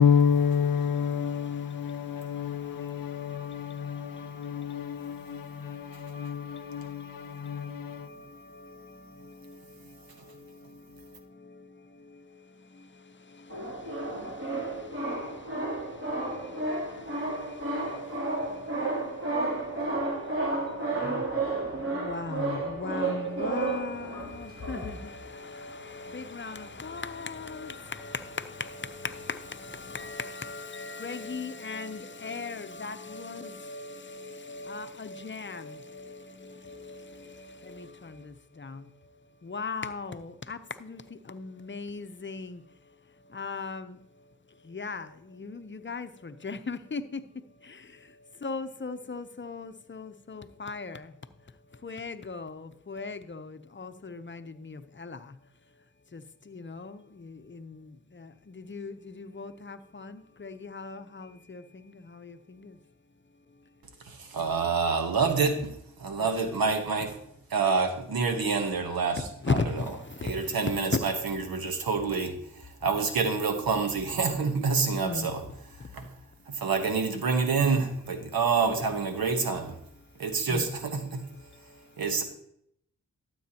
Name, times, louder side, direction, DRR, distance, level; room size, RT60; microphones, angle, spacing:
voice 1, 0.0-4.1 4.4-7.0 7.4-8.0, left 7 dB, 70° left, 0.6 m, -28 dB
voice 2, 0.7-1.1 64.1-65.7 66.0-67.1 67.5-69.8 70.2-72.3 72.8-75.4 75.9-76.1 76.5-79.7 80.2-81.2 82.0-82.2, right 4 dB, 85° right, 1.3 m, -27 dB
sound 1, 13.5-25.2 25.8-25.9 26.1-26.3 26.7-28.1 28.3-30.1, right 2 dB, 35° right, 3.1 m, -32 dB
voice 3, 21.9-36.2 36.7-36.8 37.7-37.9 38.6-38.7 39.5-41.0 41.3-42.6 43.3-43.9 44.7-45.1 45.4-47.2 48.4-51.0 51.8-53.5 53.8-55.2 56.5-57.7 58.6-61.6 62.2-62.3 69.4-69.6 75.0-75.3 80.5-80.6, left 4 dB, 35° left, 0.8 m, -37 dB
12.5 x 7.9 x 2.9 m
cardioid pair, 45°, 35 cm